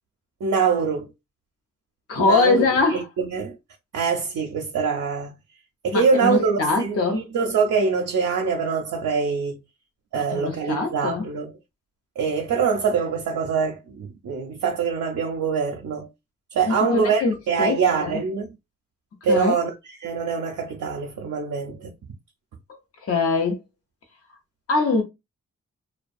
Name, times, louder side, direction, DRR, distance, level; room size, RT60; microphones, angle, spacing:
voice 1, 0.4-1.1 2.2-2.6 2.9-3.6 3.9-5.3 5.8-9.6 10.1-11.5 12.2-16.1 16.5-18.5 19.2-21.9, right 5 dB, 65° right, 0.6 m, -24 dB
voice 2, 2.1-3.1 5.9-7.2 10.1-11.2 16.7-18.2 19.3-19.5 22.7-23.6 24.7-25.0, left 3 dB, 45° left, 0.7 m, -23 dB
2.3 x 2.2 x 2.5 m
cardioid pair, 60°, 32 cm